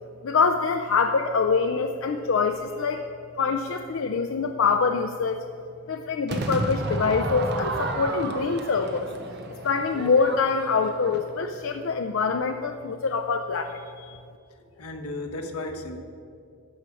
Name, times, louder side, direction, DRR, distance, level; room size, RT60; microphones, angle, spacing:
voice 1, 0.2-3.0 3.4-5.4 5.9-9.1 9.6-14.2, left 5 dB, 60° left, 6 dB, 0.4 m, -25 dB
Crowd / Fireworks, 6.3-11.5, right 2 dB, 50° right, 0.8 m, -32 dB
voice 2, 14.6-16.0, left 2 dB, 85° left, 4 dB, 1.1 m, -35 dB
12.5 x 4.7 x 7.5 m, 2.4 s
head